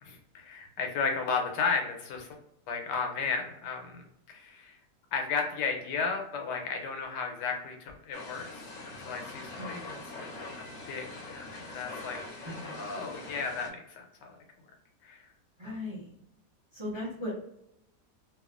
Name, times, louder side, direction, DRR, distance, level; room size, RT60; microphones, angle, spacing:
voice 1, 0.0-2.3 2.7-4.8 5.1-10.3 10.9-12.2 12.7-14.4 15.0-15.2 15.6-15.7, left 5 dB, 85° left, 3 dB, 1.3 m, -34 dB
sound 1, 8.1-13.7, left 2 dB, 60° left, 0.9 m, -43 dB
voice 2, 9.6-10.1 12.5-12.8 15.6-16.1 16.7-17.5, left 1 dB, 30° right, -7 dB, 0.5 m, -38 dB
2.8 x 2.4 x 2.3 m, 0.76 s
omnidirectional pair, 1.8 m